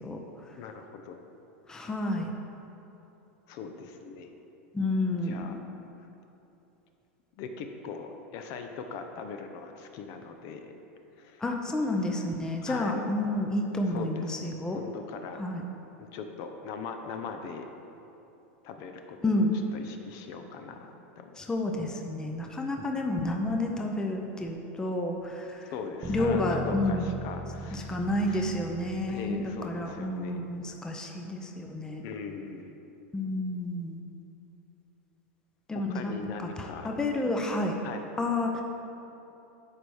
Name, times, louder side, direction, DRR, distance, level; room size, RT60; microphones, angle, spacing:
voice 1, 0.6-1.2 3.5-4.3 5.2-5.6 7.4-10.7 11.2-11.4 12.6-13.1 13.9-15.4 16.1-17.7 18.6-19.5 19.7-21.3 25.6-27.9 28.2-28.4 29.0-30.4 32.0-32.7 35.7-36.9 37.8-38.0, left 5 dB, 50° left, 5 dB, 0.6 m, -40 dB
voice 2, 1.7-2.3 4.7-5.6 11.4-14.8 15.4-15.6 19.2-19.6 21.4-25.7 26.1-27.1 27.7-32.0 33.1-34.0 35.7-36.1 36.4-37.8 38.2-38.6, left 1 dB, 10° left, 2 dB, 0.6 m, -30 dB
sound 1, 26.0-30.1, right 1 dB, 25° right, 1.2 m, -39 dB
9.5 x 3.4 x 6.2 m, 3.0 s
supercardioid pair, 135°, 7 cm